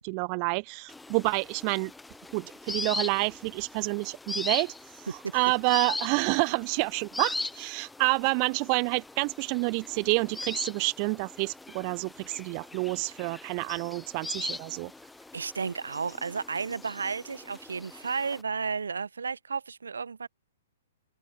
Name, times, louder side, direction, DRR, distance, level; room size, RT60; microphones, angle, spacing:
voice 1, 0.0-1.9 2.3-5.1 5.3-14.9, right 40 dB or more, 35° right, 0.6 m, -28 dB
sound 1, 0.9-18.4, left 2 dB, 5° left, 0.7 m, -40 dB
voice 2, 15.3-20.3, right 5 dB, 65° right, 0.8 m, -33 dB
open air
figure-of-eight pair, 115°, 0 cm